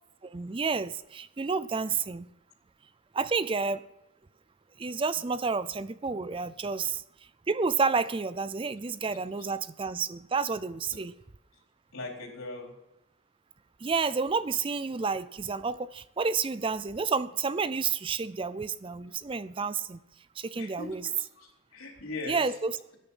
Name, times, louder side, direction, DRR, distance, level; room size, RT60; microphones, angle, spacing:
voice 1, 0.2-2.3 3.1-3.8 4.8-7.0 7.5-11.1 13.8-20.0 20.4-21.1 22.3-22.8, right 4 dB, 25° right, 16 dB, 0.4 m, -30 dB
voice 2, 11.9-12.7 20.5-22.5, left 2 dB, 75° left, 1 dB, 4.0 m, -40 dB
16.5 x 10.0 x 5.6 m, 0.90 s
head